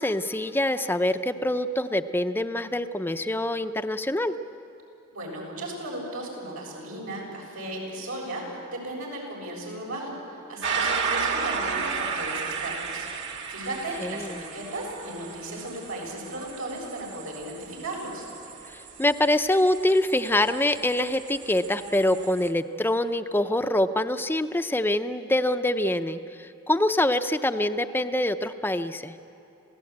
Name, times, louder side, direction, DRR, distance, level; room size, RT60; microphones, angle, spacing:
voice 1, 0.0-4.4 14.0-14.4 19.0-29.1, left 1 dB, 10° left, 9 dB, 0.6 m, -25 dB
voice 2, 5.1-18.2, right 1 dB, 85° right, -2 dB, 7.3 m, -36 dB
sound 1, 10.6-22.5, right 5 dB, 60° right, 2.0 m, -34 dB
27.5 x 17.5 x 8.7 m, 3.0 s
head